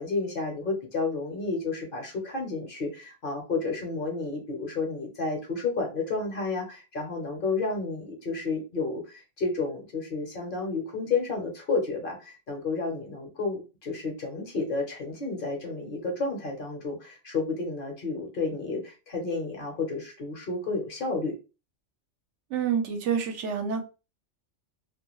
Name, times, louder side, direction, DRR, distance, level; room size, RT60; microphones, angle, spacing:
voice 1, 0.0-21.3, left 3 dB, 50° left, 2 dB, 0.9 m, -31 dB
voice 2, 22.5-23.8, right 7 dB, 75° right, 6 dB, 0.9 m, -28 dB
2.4 x 2.2 x 3.0 m, 0.30 s
omnidirectional pair, 1.3 m